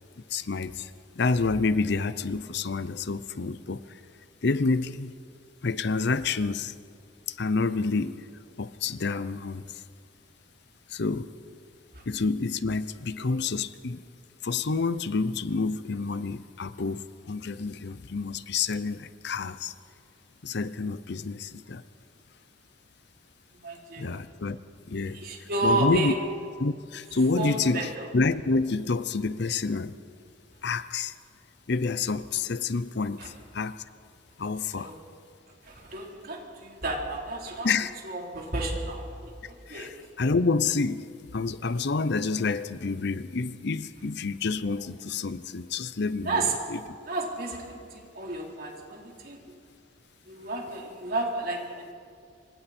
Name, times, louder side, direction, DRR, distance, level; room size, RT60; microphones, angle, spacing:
voice 1, 0.3-0.9 1.2-4.0 4.4-5.2 5.6-6.7 7.3-8.2 8.6-9.8 10.9-11.3 12.1-14.0 14.4-19.7 20.4-21.8 24.0-24.6 24.9-26.1 26.6-29.9 30.6-31.1 31.7-33.8 34.4-34.9 37.6-37.9 39.7-46.8, left 4 dB, 60° left, 0.7 m, -28 dB
voice 2, 23.6-24.1 25.1-26.1 27.4-28.1 33.2-33.3 34.7-35.0 35.6-37.7 38.0-39.9 46.2-46.5 47.1-49.4 50.3-51.9, right 2 dB, 50° right, 3.9 m, -31 dB
27.0 x 25.5 x 4.4 m
head